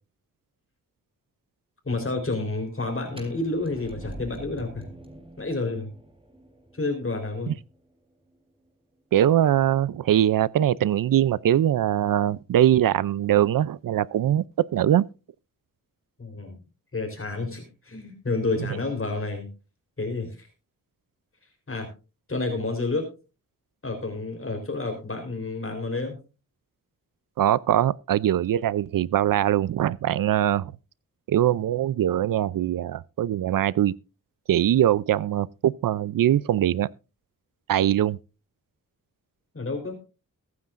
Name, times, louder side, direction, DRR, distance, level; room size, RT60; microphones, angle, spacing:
voice 1, 1.9-4.9 5.4-5.9 6.7-7.5 16.2-16.6 16.9-19.5 20.0-20.5 21.7-21.9 22.3-23.1 23.8-26.2 39.5-39.9, left 3 dB, 40° left, 4.0 m, -29 dB
sound 1, 3.1-8.9, right 1 dB, 15° right, 3.8 m, -45 dB
voice 2, 9.1-15.0 27.4-30.7 31.3-33.9 34.5-36.9 37.7-38.2, right 11 dB, 75° right, 0.5 m, -22 dB
22.0 x 9.6 x 2.5 m
wide cardioid pair, 90°, 33 cm